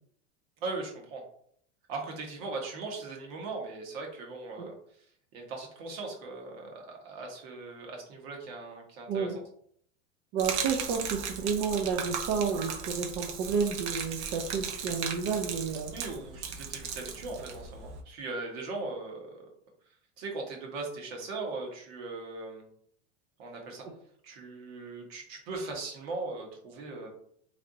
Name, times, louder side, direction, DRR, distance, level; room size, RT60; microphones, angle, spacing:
voice 1, 0.6-1.2 1.9-4.7 5.3-9.3 15.9-19.4 20.2-22.7 23.4-23.8 24.2-27.1, right 3 dB, 55° right, 1 dB, 1.3 m, -39 dB
voice 2, 9.1-9.4 10.3-15.9 23.8-23.9, right 5 dB, 40° right, 2 dB, 0.5 m, -31 dB
Gurgling / Liquid, 10.4-18.0, right 6 dB, 75° right, 0.8 m, -37 dB
3.3 x 2.6 x 3.8 m, 0.64 s
supercardioid pair, 150°, 34 cm